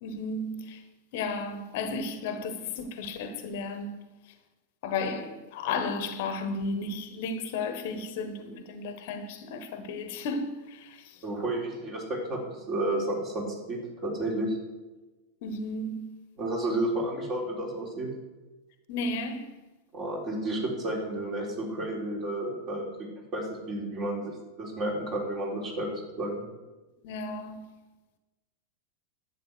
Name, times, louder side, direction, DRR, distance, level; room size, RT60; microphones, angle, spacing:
voice 1, 0.0-0.8 1.1-4.0 4.8-11.2 15.4-16.1 18.9-19.5 27.0-27.7, left 3 dB, 50° left, 1.1 m, -34 dB
voice 2, 11.2-14.6 16.4-18.1 19.9-22.9 23.3-25.9 26.2-26.5, right 1 dB, 35° right, 3.9 m, -31 dB
11.0 x 8.4 x 6.3 m
figure-of-eight pair, 90°, 0 cm